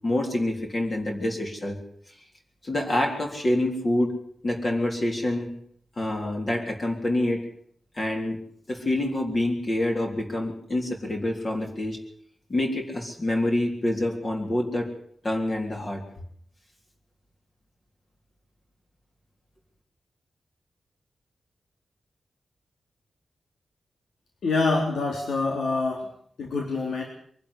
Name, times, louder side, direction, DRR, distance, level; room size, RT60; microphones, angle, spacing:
voice 1, 0.0-1.8 2.6-4.2 4.4-5.5 6.0-7.5 7.9-8.4 8.7-12.0 12.5-14.9 15.2-16.0, left 1 dB, 30° left, 1 dB, 3.7 m, -26 dB
voice 2, 24.4-26.1 26.4-27.0, left 3 dB, 90° left, 0 dB, 3.6 m, -25 dB
24.0 x 12.0 x 10.0 m, 0.64 s
wide cardioid pair, 145°, 0 cm